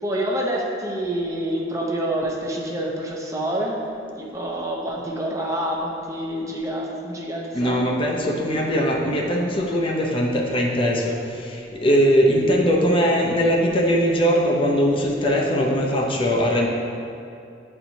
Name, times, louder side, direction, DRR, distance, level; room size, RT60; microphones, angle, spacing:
voice 1, 0.0-3.8 4.2-7.8, right 1 dB, 20° right, -2 dB, 0.6 m, -27 dB
voice 2, 7.5-16.7, equal, 30° left, 0 dB, 0.5 m, -20 dB
8.6 x 4.4 x 2.7 m, 2.5 s
head